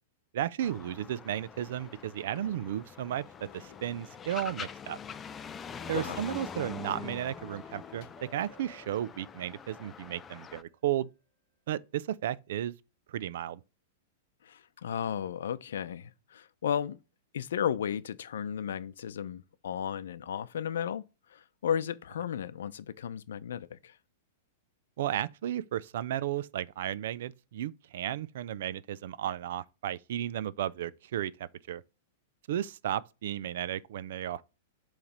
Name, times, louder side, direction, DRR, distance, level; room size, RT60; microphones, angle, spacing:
voice 1, 0.3-3.2 3.5-5.0 5.9-11.1 11.7-12.7 13.1-13.6 25.0-31.8 32.5-34.4, right 11 dB, 65° right, 0.4 m, -34 dB
sound 1, 0.6-10.6, left 7 dB, 15° left, 0.3 m, -44 dB
Sliding door / Slam, 1.7-8.4, left 9 dB, 35° left, 1.0 m, -59 dB
sound 2, 5.8-10.9, equal, 15° right, 1.2 m, -55 dB
voice 2, 14.4-17.0 17.3-21.0 21.3-24.0, left 8 dB, 85° left, 0.6 m, -34 dB
7.1 x 3.2 x 5.1 m
supercardioid pair, 160°, 0 cm